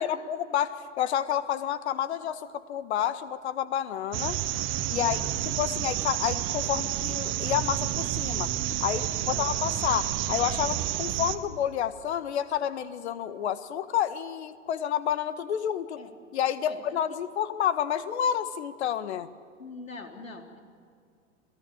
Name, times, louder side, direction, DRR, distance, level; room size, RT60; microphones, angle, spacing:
voice 1, 0.0-2.4 2.7-4.4 4.9-5.2 5.6-8.5 8.8-16.0 16.3-19.3, left 10 dB, 55° left, 13 dB, 1.5 m, -29 dB
sound 1, 4.1-11.4, right 13 dB, 30° right, 1.3 m, -30 dB
voice 2, 4.9-5.3 9.1-9.4 16.0-16.1 16.6-17.0 19.6-20.6, left 3 dB, 85° left, 3 dB, 3.7 m, -43 dB
29.0 x 18.5 x 8.7 m, 2.2 s
hypercardioid pair, 115°, 39 cm